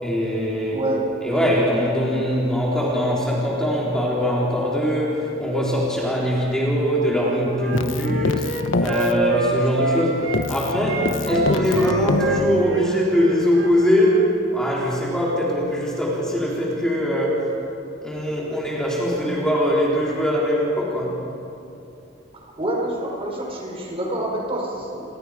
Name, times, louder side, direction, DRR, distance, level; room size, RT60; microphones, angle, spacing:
voice 1, 0.0-0.8 1.2-14.3 14.5-17.5 18.0-21.2, equal, 5° left, -5 dB, 4.0 m, -22 dB
voice 2, 0.7-1.5 22.4-25.0, right 1 dB, 30° right, -1 dB, 5.1 m, -27 dB
Wind instrument woodwind instrument, 7.2-10.4 10.8-14.2, right 3 dB, 85° right, 3.5 m, -27 dB
Keyboard (musical), 7.7-10.0 10.3-13.1, left 2 dB, 80° left, 1.0 m, -26 dB
29.0 x 25.5 x 5.1 m, 2.7 s
head